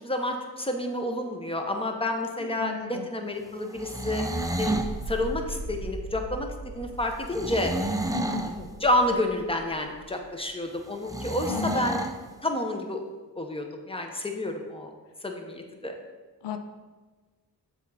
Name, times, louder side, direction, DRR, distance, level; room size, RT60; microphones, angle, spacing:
voice 1, 0.0-4.3 4.6-4.8 5.1-7.7 8.6-12.0 12.4-13.0 13.4-14.9 15.2-15.9, left 1 dB, 15° left, 3 dB, 0.9 m, -29 dB
voice 2, 2.4-3.1 8.1-8.5 11.5-12.0 16.4-16.6, left 7 dB, 85° left, 7 dB, 0.5 m, -35 dB
sound 1, 3.7-4.9 7.3-8.6 11.1-12.2, right 2 dB, 10° right, 0.5 m, -30 dB
sound 2, 4.6-10.3, right 2 dB, 75° right, 0.8 m, -40 dB
7.1 x 4.3 x 4.1 m, 1.3 s
cardioid pair, 55°, 41 cm